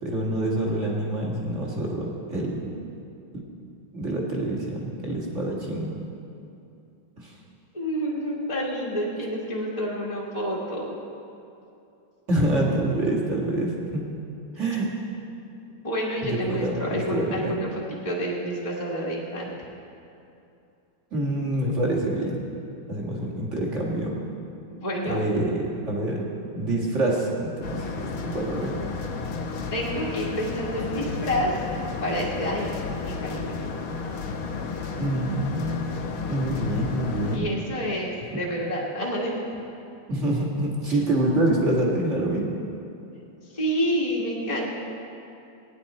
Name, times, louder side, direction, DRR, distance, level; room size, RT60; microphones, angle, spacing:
voice 1, 0.0-2.6 3.9-5.9 7.2-7.4 12.3-14.1 14.6-14.9 16.2-17.6 21.1-22.5 22.9-24.2 25.0-26.2 26.5-28.7 35.0-35.8 36.3-37.4 40.1-42.5, right 1 dB, 35° right, -3 dB, 2.0 m, -26 dB
voice 2, 7.7-10.9 15.8-19.5 24.7-25.2 29.7-31.6 32.0-33.5 37.3-39.5 43.5-44.7, equal, 20° left, -7 dB, 1.3 m, -29 dB
sound 1, 27.6-37.4, left 4 dB, 90° left, 1.8 m, -32 dB
16.5 x 10.0 x 4.2 m, 2.7 s
omnidirectional pair, 2.3 m